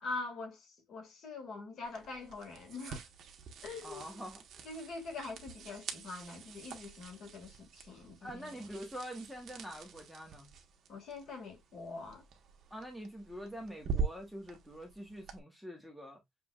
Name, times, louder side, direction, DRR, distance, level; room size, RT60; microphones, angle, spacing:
voice 1, 0.0-3.1 3.6-4.2 4.6-8.7 10.9-12.2, left 3 dB, 45° left, 2.0 m, -44 dB
sound 1, 1.8-15.4, right 5 dB, 45° right, 1.2 m, -44 dB
voice 2, 3.8-4.6 8.2-10.5 12.7-16.2, equal, ahead, 1.1 m, -45 dB
6.8 x 3.3 x 2.4 m
cardioid pair, 180°, 0 cm